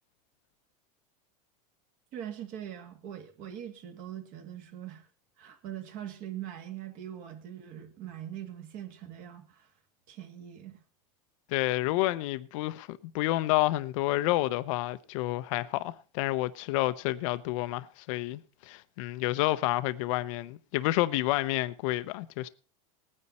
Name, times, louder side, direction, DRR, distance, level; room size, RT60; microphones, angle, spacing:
voice 1, 2.1-5.1 5.4-9.7 10.1-10.8, right 11 dB, 45° right, 2.3 m, -42 dB
voice 2, 11.5-22.5, left 17 dB, 65° left, 0.7 m, -29 dB
18.5 x 9.7 x 4.2 m
supercardioid pair, 145°, 18 cm